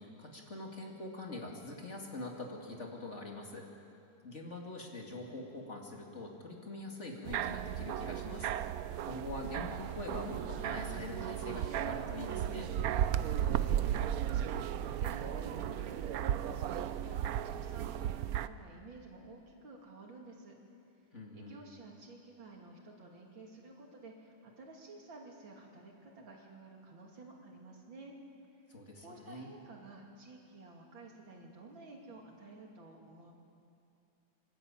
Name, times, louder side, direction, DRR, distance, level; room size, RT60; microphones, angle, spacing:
voice 1, 0.0-3.7 4.2-12.7 21.1-21.6 28.7-29.5, left 2 dB, 35° left, 0 dB, 2.5 m, -44 dB
sound 1, 7.3-18.5, right 10 dB, 70° right, 0.9 m, -35 dB
sound 2, 12.0-17.2, right 5 dB, 50° right, 1.4 m, -56 dB
voice 2, 13.2-20.5 21.3-28.1 28.7-33.3, right 3 dB, 90° right, 0 dB, 3.4 m, -52 dB
27.0 x 12.5 x 8.8 m, 2.5 s
omnidirectional pair, 2.1 m